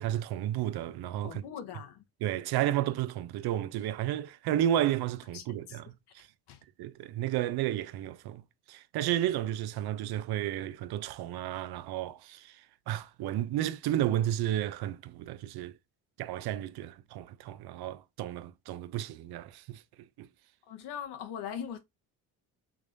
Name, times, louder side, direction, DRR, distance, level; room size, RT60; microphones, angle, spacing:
voice 1, 0.0-1.4 2.2-5.9 6.1-6.3 6.8-8.4 8.7-12.6 12.9-15.7 16.2-19.8 20.2-20.3, right 12 dB, 60° right, 0.6 m, -32 dB
voice 2, 1.2-2.0 5.3-5.8 6.5-6.6 20.7-21.8, left 8 dB, 70° left, 0.8 m, -41 dB
3.5 x 3.3 x 2.5 m
supercardioid pair, 75°, 42 cm